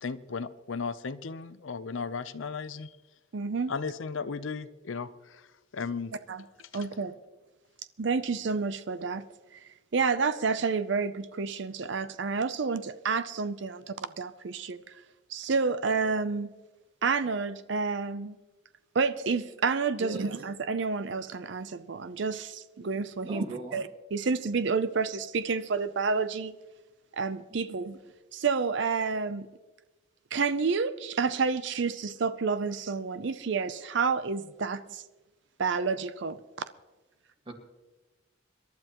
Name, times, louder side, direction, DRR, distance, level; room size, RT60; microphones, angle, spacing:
voice 1, 0.0-2.9 3.7-5.4 5.7-6.1, left 5 dB, 75° left, 0.6 m, -35 dB
voice 2, 3.3-3.7 6.3-6.4 6.7-7.1 8.0-9.2 9.5-14.9 15.3-16.5 17.0-18.4 18.9-23.4 23.7-26.5 27.1-28.0 28.3-29.5 30.3-35.0 35.6-36.4, right 4 dB, 65° right, 0.5 m, -29 dB
voice 3, 20.0-20.3 23.2-23.8 27.7-27.8 37.5-37.6, right 1 dB, 25° right, 1.8 m, -39 dB
26.5 x 12.0 x 3.0 m
head